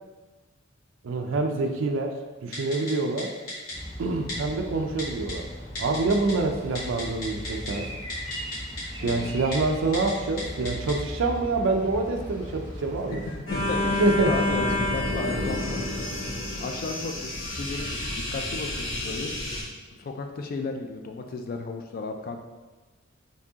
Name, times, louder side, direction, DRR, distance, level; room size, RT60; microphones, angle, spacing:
voice 1, 1.0-3.3 4.0-5.5 5.8-7.9 9.0-13.3 14.0-14.3, right 3 dB, 65° right, 3 dB, 0.4 m, -26 dB
Typing, 2.5-2.9 3.2-3.3 3.5-3.7 4.3-4.4 5.0-5.3 5.8-6.3 6.6-7.7 8.1-8.8 9.1-9.2 9.5-9.6 9.9-10.1 10.4-10.9 11.3-11.4, left 2 dB, 85° left, 1.4 m, -35 dB
sound 1, 3.7-13.4, equal, 20° left, 1.2 m, -38 dB
voice 2, 9.0-9.5 13.5-16.1 16.6-19.3 20.0-22.4, left 3 dB, 45° left, 4 dB, 0.3 m, -34 dB
sound 2, 13.5-19.6, left 1 dB, 65° left, 1.0 m, -29 dB
4.6 x 2.7 x 2.8 m, 1.2 s
head